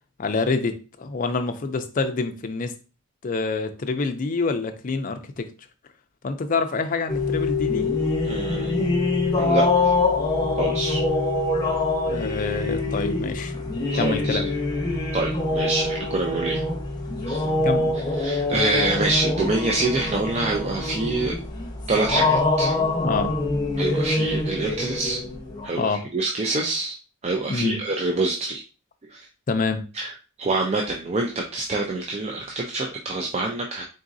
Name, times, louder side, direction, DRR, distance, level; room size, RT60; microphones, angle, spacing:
voice 1, 0.2-2.7 3.2-5.5 6.2-7.9 12.1-13.5 13.9-14.5 17.6-17.9 23.0-23.3 25.8-26.1 27.5-27.8 29.5-29.9, left 4 dB, 40° left, 7 dB, 0.4 m, -26 dB
sound 1, 7.1-25.7, left 2 dB, 20° left, 0.8 m, -24 dB
voice 2, 8.3-8.8 9.4-9.9 10.6-11.0 13.9-14.4 15.1-16.6 17.3-17.5 18.2-21.4 21.9-22.8 23.8-25.2 25.6-27.0 27.2-28.6 29.1-29.3 29.9-30.1 30.4-33.8, right 2 dB, 30° right, 1 dB, 0.4 m, -26 dB
3.9 x 3.6 x 2.6 m, 0.33 s
head